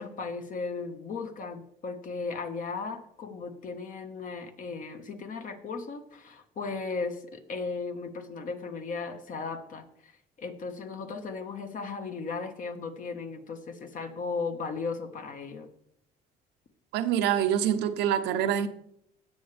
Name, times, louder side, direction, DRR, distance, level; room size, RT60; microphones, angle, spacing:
voice 1, 0.0-10.1 10.4-15.7, left 4 dB, 50° left, 1.5 m, -36 dB
voice 2, 16.9-18.7, right 9 dB, 90° right, 0.9 m, -25 dB
17.5 x 7.2 x 3.4 m
cardioid pair, 110°, 17 cm